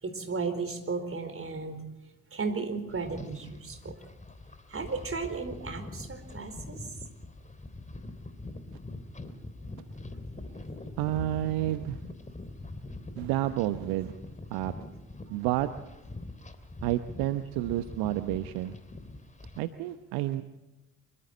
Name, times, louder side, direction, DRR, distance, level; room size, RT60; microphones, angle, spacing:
voice 1, 0.0-1.8 2.3-4.0 4.7-6.9, right 4 dB, 35° right, 8 dB, 4.4 m, -34 dB
sound 1, 2.9-19.6, left 2 dB, 20° left, 2.9 m, -43 dB
voice 2, 11.0-12.0 13.2-14.2 14.5-14.7 15.3-15.7 16.8-18.7 19.6-20.4, right 15 dB, 65° right, 11 dB, 1.0 m, -30 dB
26.0 x 24.5 x 4.3 m, 1.0 s
figure-of-eight pair, 45°, 39 cm